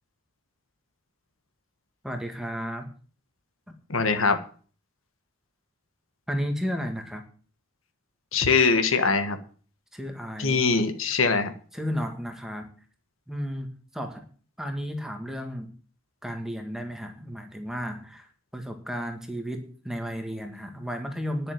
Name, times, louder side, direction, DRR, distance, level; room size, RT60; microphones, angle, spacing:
voice 1, 2.0-2.9 6.3-7.3 9.9-10.6 11.7-12.7 13.3-14.3 14.6-15.7 16.2-18.3 18.5-21.5, equal, ahead, 4 dB, 1.7 m, -33 dB
voice 2, 3.9-4.4 8.3-9.4 10.4-11.5, left 4 dB, 75° left, 8 dB, 1.6 m, -22 dB
10.5 x 6.8 x 9.1 m, 0.42 s
head